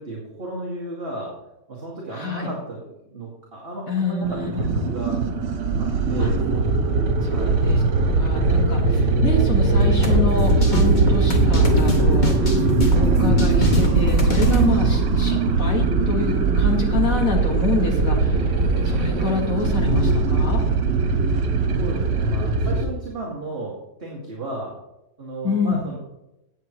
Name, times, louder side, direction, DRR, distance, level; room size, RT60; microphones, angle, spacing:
voice 1, 0.0-1.3 1.7-5.2 5.8-7.6 21.8-24.8 25.2-26.0, right 2 dB, 35° right, -4 dB, 2.3 m, -34 dB
voice 2, 2.1-2.5 3.9-4.8 6.2-6.3 7.2-18.5 18.8-20.6 25.4-25.8, left 4 dB, 50° left, 1 dB, 2.0 m, -27 dB
sound 1, 4.2-22.8, right 3 dB, 80° right, 1.9 m, -20 dB
sound 2, 9.8-14.7, left 1 dB, 25° left, 1.6 m, -23 dB
16.5 x 8.1 x 3.1 m, 0.90 s
omnidirectional pair, 1.9 m